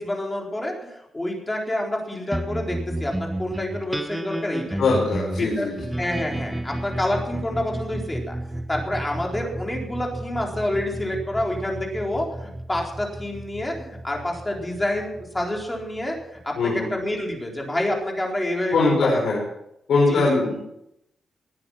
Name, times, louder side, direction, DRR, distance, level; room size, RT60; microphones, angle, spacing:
voice 1, 0.0-4.8 5.4-5.7 6.0-8.4 8.7-19.2 20.1-20.4, left 1 dB, 15° left, 0 dB, 4.2 m, -28 dB
sound 1, 2.3-17.0, right 1 dB, 10° right, 0.9 m, -33 dB
voice 2, 4.8-5.8 16.6-16.9 18.7-19.4 19.9-20.6, left 3 dB, 75° left, -4 dB, 5.5 m, -21 dB
20.0 x 9.8 x 5.9 m, 0.80 s
cardioid pair, 120°, 0 cm